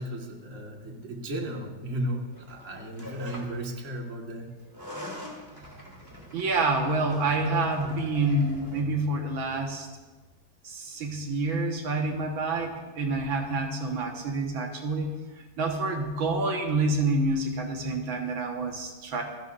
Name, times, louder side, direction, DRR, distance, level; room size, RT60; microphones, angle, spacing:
voice 1, 0.0-4.5, equal, 40° right, 1 dB, 1.9 m, -35 dB
sound 1, 2.3-3.7 4.6-8.8, equal, 10° right, 2.7 m, -44 dB
voice 2, 6.3-9.9 10.6-19.2, right 2 dB, 80° right, 2 dB, 2.2 m, -28 dB
28.5 x 11.0 x 2.6 m, 1.2 s
omnidirectional pair, 2.1 m